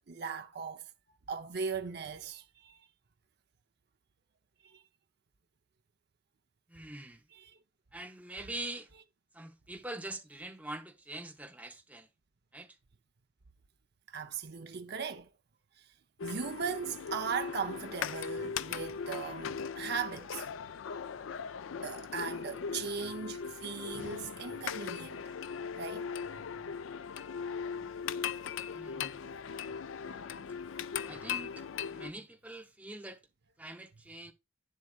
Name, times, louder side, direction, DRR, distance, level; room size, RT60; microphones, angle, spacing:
voice 1, 0.1-0.9 1.3-2.9 4.6-4.8 7.3-7.6 14.1-15.3 15.8-15.9 16.2-20.5 21.8-25.3 25.7-26.1, right 5 dB, 55° right, 0.7 m, -38 dB
voice 2, 6.7-7.3 7.9-8.9 9.3-12.1 12.5-12.8 28.7-29.2 30.1-30.5 31.1-33.2 33.6-34.3, right 1 dB, 5° right, 1.0 m, -44 dB
sound 1, 16.2-32.1, left 6 dB, 75° left, 0.4 m, -39 dB
9.5 x 7.6 x 2.4 m
head